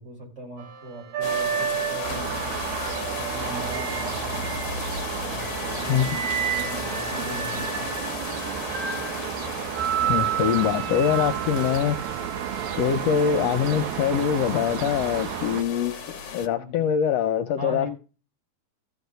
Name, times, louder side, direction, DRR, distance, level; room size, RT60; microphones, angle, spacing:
voice 1, 0.0-2.5 3.2-4.5 5.2-7.9 10.0-10.4 16.6-16.8 17.6-17.9, equal, 25° right, 5.5 m, -39 dB
sound 1, 0.6-4.9 5.4-13.5 14.5-14.8, right 9 dB, 70° right, 2.1 m, -32 dB
sound 2, 1.2-16.5, left 6 dB, 55° left, 1.3 m, -36 dB
sound 3, 2.0-15.6, right 10 dB, 85° right, 2.1 m, -33 dB
voice 2, 10.1-12.0 12.8-17.9, left 8 dB, 75° left, 1.7 m, -24 dB
14.5 x 4.8 x 6.7 m
omnidirectional pair, 3.3 m